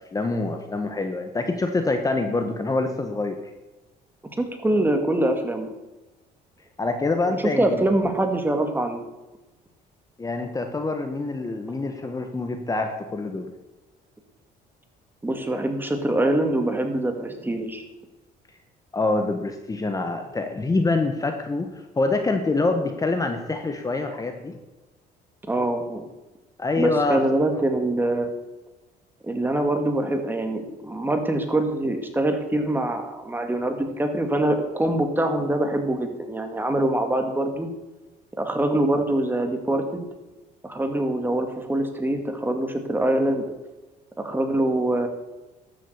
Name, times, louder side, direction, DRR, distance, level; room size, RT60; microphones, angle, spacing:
voice 1, 0.1-3.4 6.8-7.8 10.2-13.5 18.9-21.7 22.0-24.6 26.6-27.2 27.5-27.6, left 3 dB, 20° left, 5 dB, 1.3 m, -25 dB
voice 2, 4.4-5.7 7.3-9.0 15.2-17.8 25.5-26.1 26.8-28.3 29.2-37.7 38.4-40.1 40.6-43.4 44.2-45.1, right 1 dB, 10° right, 5 dB, 2.1 m, -24 dB
13.0 x 7.4 x 8.1 m, 1.1 s
cardioid pair, 110°, 17 cm